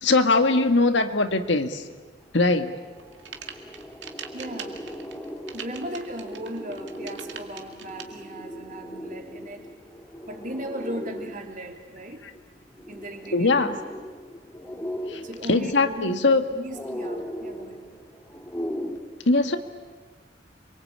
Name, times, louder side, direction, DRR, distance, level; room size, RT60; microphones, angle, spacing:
voice 1, 0.0-1.8 2.3-2.7 13.3-13.8 15.1-15.2 15.5-16.4 19.3-19.6, left 3 dB, 80° left, 8 dB, 1.6 m, -21 dB
sound 1, 2.8-19.0, equal, 10° left, 2.2 m, -38 dB
sound 2, 3.0-8.0, right 7 dB, 80° right, 2.3 m, -41 dB
voice 2, 4.3-4.8 5.5-9.7 10.3-12.2 12.9-13.7 15.2-16.2 16.5-17.9, right 1 dB, 45° right, 3 dB, 3.2 m, -37 dB
28.5 x 23.0 x 8.7 m, 1.4 s
head